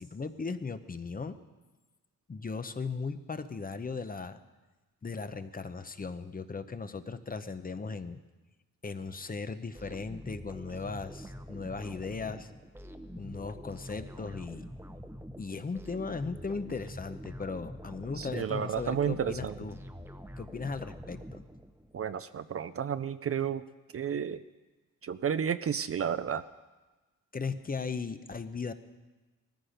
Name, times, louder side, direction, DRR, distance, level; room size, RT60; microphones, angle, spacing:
voice 1, 0.0-1.4 2.3-4.4 5.0-8.2 8.8-12.5 13.1-14.7 15.4-19.8 20.4-21.4 27.3-28.7, left 4 dB, 25° left, 10 dB, 0.7 m, -37 dB
sound 1, 9.7-22.0, equal, 5° right, 0.8 m, -46 dB
voice 2, 18.2-19.6 21.9-23.6 23.9-24.4 25.0-26.4, right 8 dB, 45° right, 12 dB, 0.5 m, -32 dB
19.5 x 14.0 x 5.1 m, 1.2 s
wide cardioid pair, 145°, 34 cm